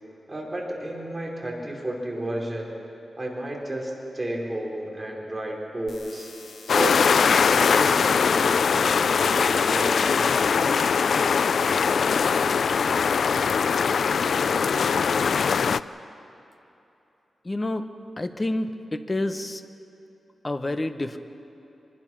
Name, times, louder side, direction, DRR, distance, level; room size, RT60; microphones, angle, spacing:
voice 1, 0.3-2.7 3.2-6.3 6.7-7.1 7.5-10.8 11.1-11.4, right 1 dB, 20° right, -2 dB, 4.0 m, -32 dB
sound 1, 5.9-11.9, left 5 dB, 85° left, 1.7 m, -51 dB
sound 2, 6.7-15.8, left 6 dB, 70° left, 0.4 m, -21 dB
voice 2, 17.4-17.9 18.2-19.6 20.4-21.2, left 1 dB, 25° left, 9 dB, 1.0 m, -28 dB
25.0 x 21.0 x 6.2 m, 2.9 s
wide cardioid pair, 110°, 0 cm